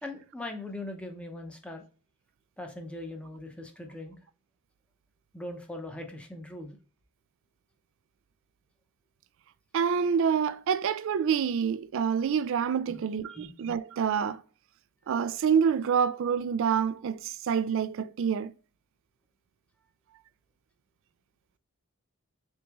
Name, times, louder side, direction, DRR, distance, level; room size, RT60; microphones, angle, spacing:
voice 1, 0.0-1.8 2.6-4.2 5.3-6.8 12.9-13.0 13.3-13.5, left 2 dB, 5° left, 0.7 m, -40 dB
voice 2, 9.7-14.4 15.1-18.5, right 7 dB, 60° right, 0.3 m, -27 dB
3.9 x 3.5 x 3.0 m
head